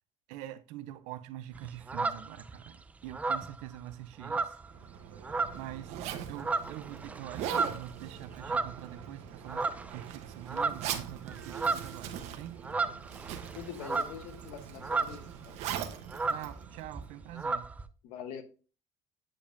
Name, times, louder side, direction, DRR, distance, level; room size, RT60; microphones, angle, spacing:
voice 1, 0.3-4.6 5.5-9.6 9.9-12.6 16.3-17.7, right 13 dB, 90° right, 0.5 m, -45 dB
sound 1, 1.5-2.7 3.1-4.9 5.2-5.8 6.2-9.1 9.5-10.0 10.3-15.4 15.6-15.7 15.9-17.8, right 4 dB, 10° right, 0.3 m, -34 dB
Zipper (clothing), 4.7-17.3, right 10 dB, 70° right, 0.9 m, -41 dB
voice 2, 13.6-15.5 18.0-18.4, left 8 dB, 80° left, 0.9 m, -43 dB
8.5 x 5.1 x 2.5 m
cardioid pair, 140°, 12 cm